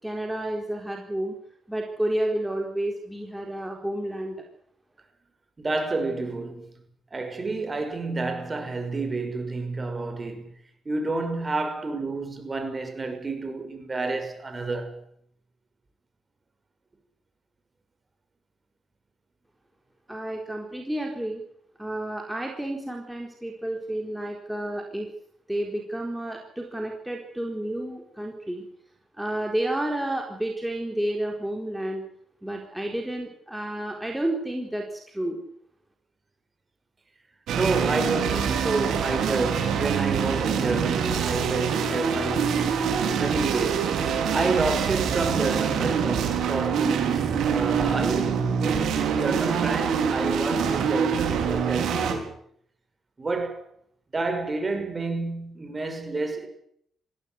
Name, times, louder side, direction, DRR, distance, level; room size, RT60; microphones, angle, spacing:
voice 1, 0.0-1.3 1.7-4.4 20.1-21.4 21.8-25.1 25.5-28.6 29.2-32.0 32.4-35.4, right 1 dB, 5° right, 4.2 m, -30 dB
voice 2, 5.6-6.8 7.1-10.5 10.8-15.0 37.5-42.7 43.2-44.0 44.3-52.3 53.2-53.6 54.1-56.5, right 3 dB, 25° right, 6.0 m, -29 dB
sound 1, 37.5-52.1, right 7 dB, 75° right, 5.5 m, -25 dB
21.0 x 16.0 x 9.6 m
cardioid pair, 90°, 0 cm